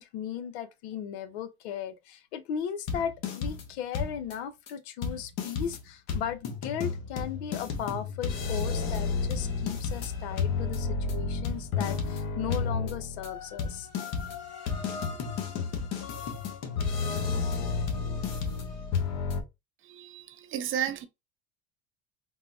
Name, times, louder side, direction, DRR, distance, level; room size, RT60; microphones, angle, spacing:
voice 1, 0.0-13.9, left 9 dB, 80° left, 0.6 m, -36 dB
sound 1, 2.9-3.7 3.9-4.3 4.7-4.8 5.0-19.4, left 5 dB, 55° left, 0.9 m, -32 dB
voice 2, 19.8-21.1, right 9 dB, 40° right, 0.6 m, -33 dB
3.7 x 2.0 x 2.5 m
hypercardioid pair, 90°, 32 cm